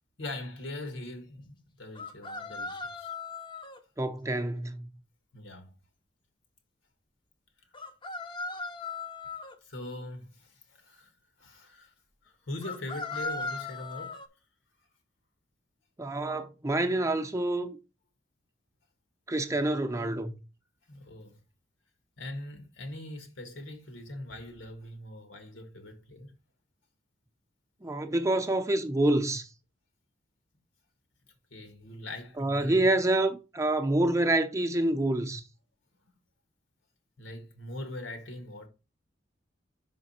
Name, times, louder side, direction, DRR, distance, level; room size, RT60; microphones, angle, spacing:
voice 1, 0.2-3.1 5.3-5.7 9.6-11.1 11.4-11.9 12.2-14.2 20.9-21.4 22.2-26.3 31.5-32.8 36.0-36.1 37.2-38.7, left 1 dB, 90° left, 1.8 m, -42 dB
sound 1, 2.0-3.8 7.7-9.6 12.6-14.3, left 3 dB, 25° left, 0.6 m, -38 dB
voice 2, 4.0-4.9 16.0-17.7 19.3-20.4 27.8-29.5 32.4-35.4, right 1 dB, 15° right, 0.6 m, -27 dB
5.6 x 5.1 x 4.2 m
head